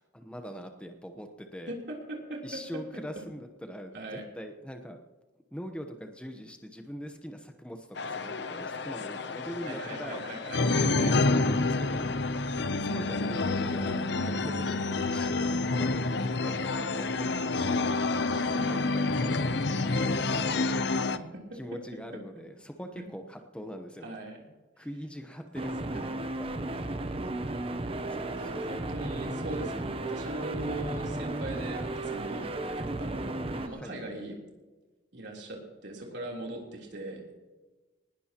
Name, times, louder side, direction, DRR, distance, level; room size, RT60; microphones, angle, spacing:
voice 1, 0.0-1.7 2.4-5.0 5.5-12.4 12.8-16.0 16.4-17.9 18.4-20.7 21.5-24.2 24.8-25.8 26.1-27.1 28.1-29.0 33.5-34.0, equal, 5° left, 5 dB, 0.9 m, -43 dB
voice 2, 2.1-2.4 3.9-4.2 9.6-11.1 18.6-19.5 21.3-21.6 24.0-24.4 25.8-26.1 28.6-32.5 32.8-34.4 35.1-37.3, right 2 dB, 60° right, -2 dB, 3.5 m, -40 dB
sound 1, 8.0-21.2, left 3 dB, 60° left, 0.7 m, -28 dB
sound 2, 25.6-33.7, right 2 dB, 30° right, 0.8 m, -34 dB
19.5 x 17.0 x 3.0 m, 1.2 s
head